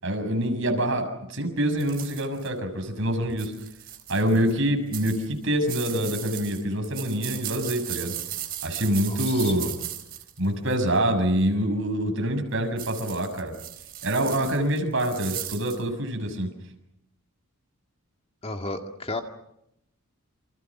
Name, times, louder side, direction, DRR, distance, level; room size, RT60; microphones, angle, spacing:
voice 1, 0.0-3.5 4.1-8.1 8.6-9.7 10.4-13.5 14.0-16.5, right 1 dB, 60° right, 5 dB, 6.8 m, -25 dB
sound 1, 1.8-2.5 3.3-4.5 4.9-10.9 12.8-15.8, right 12 dB, 40° right, 3.8 m, -37 dB
voice 2, 9.1-9.6 18.4-19.2, left 2 dB, 25° left, 5 dB, 2.0 m, -33 dB
29.0 x 27.0 x 6.2 m, 0.78 s
head